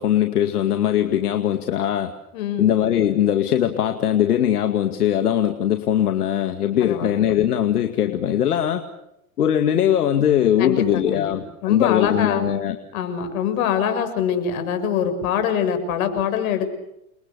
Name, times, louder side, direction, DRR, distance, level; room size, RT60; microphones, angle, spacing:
voice 1, 0.0-2.1 2.6-8.8 9.4-12.8, left 10 dB, 90° left, 6 dB, 2.2 m, -20 dB
voice 2, 2.3-2.7 6.8-7.1 10.6-11.2 11.6-12.4 12.9-16.8, left 8 dB, 65° left, 9 dB, 6.7 m, -24 dB
29.5 x 23.0 x 7.0 m, 0.84 s
hypercardioid pair, 115°, 44 cm